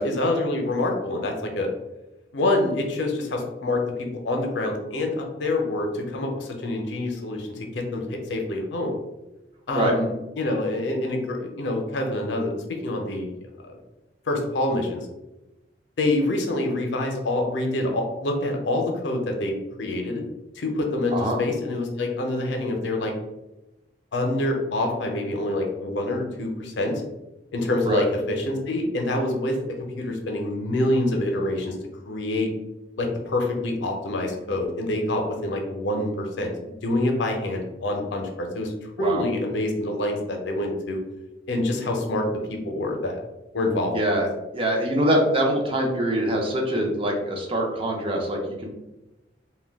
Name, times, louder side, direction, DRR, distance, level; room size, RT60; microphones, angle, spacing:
voice 1, 0.0-1.7 2.3-3.8 4.2-8.9 9.7-13.4 13.7-13.8 14.3-15.1 16.0-20.2 20.6-23.1 24.1-27.0 27.5-29.6 30.0-31.8 32.1-32.5 33.0-36.1 36.4-36.5 36.8-38.7 39.0-41.0 41.5-42.2 42.5-43.2 43.5-43.9, left 2 dB, 80° left, 2 dB, 0.5 m, -26 dB
voice 2, 43.9-44.3 44.5-48.7, right 1 dB, 30° right, 1 dB, 0.4 m, -24 dB
2.2 x 2.1 x 3.3 m, 0.98 s
head